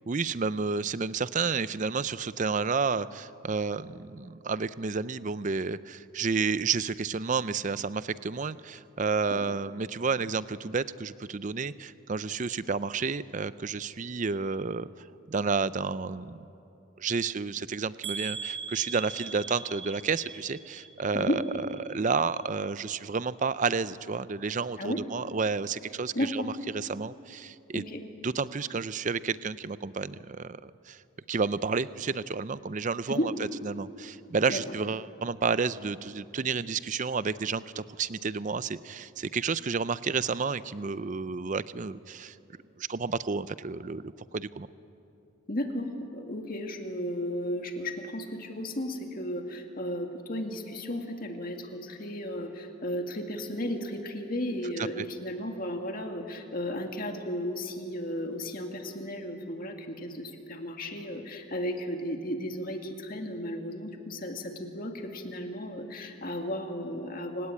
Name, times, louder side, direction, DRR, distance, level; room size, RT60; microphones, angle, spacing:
voice 1, 0.1-14.9 15.3-16.4 17.0-27.8 28.2-31.0 31.3-33.3 33.6-42.4 42.8-44.7 55.0-55.1, right 5 dB, 35° right, 16 dB, 0.5 m, -31 dB
sound 1, 18.0-22.0 22.3-22.9 23.4-23.5 23.9-24.0, right 5 dB, 80° right, 2.8 m, -40 dB
voice 2, 26.1-26.5 27.7-28.0 33.1-33.3 34.5-34.6 45.5-67.5, left 1 dB, 45° left, 4 dB, 2.1 m, -34 dB
28.0 x 18.0 x 8.6 m, 2.8 s
head